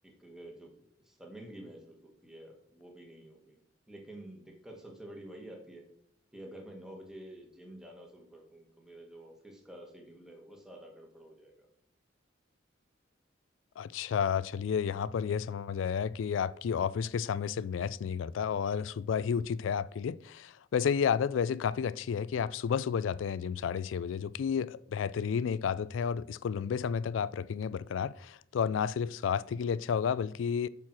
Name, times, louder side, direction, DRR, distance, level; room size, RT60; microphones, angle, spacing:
voice 1, 0.0-0.7 1.0-3.6 3.9-5.8 6.3-11.7 19.5-19.6, right 1 dB, 5° right, 1.5 m, -49 dB
voice 2, 13.8-30.7, left 7 dB, 80° left, 0.3 m, -31 dB
8.5 x 4.6 x 6.1 m
head